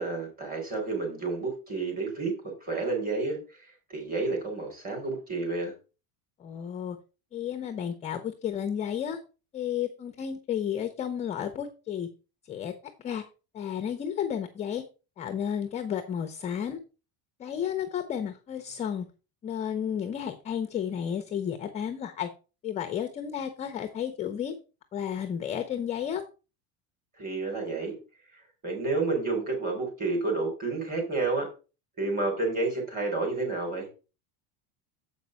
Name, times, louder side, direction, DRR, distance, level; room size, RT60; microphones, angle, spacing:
voice 1, 0.0-2.3 2.6-3.4 3.9-5.7 27.2-28.0 28.6-31.5 32.0-33.9, right 3 dB, 25° right, 1 dB, 3.5 m, -30 dB
voice 2, 6.4-7.0 7.3-9.2 9.5-12.1 12.5-12.7 13.0-13.2 13.5-14.8 15.2-16.8 17.4-19.1 19.4-22.3 22.6-24.6 24.9-26.2, left 9 dB, 20° left, 7 dB, 0.5 m, -32 dB
7.4 x 5.2 x 5.7 m, 0.33 s
cardioid pair, 180°, 38 cm